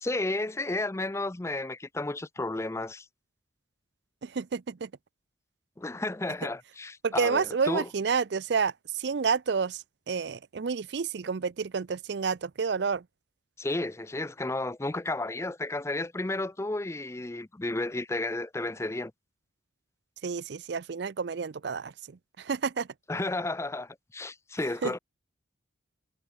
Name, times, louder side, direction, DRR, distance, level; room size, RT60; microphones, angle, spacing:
voice 1, 0.0-3.1 5.8-7.9 13.6-19.1 23.1-25.0, left 2 dB, 15° left, 0.5 m, -32 dB
voice 2, 4.2-4.9 7.0-13.0 20.2-22.9 24.8-24.9, right 5 dB, 55° right, 0.5 m, -30 dB
head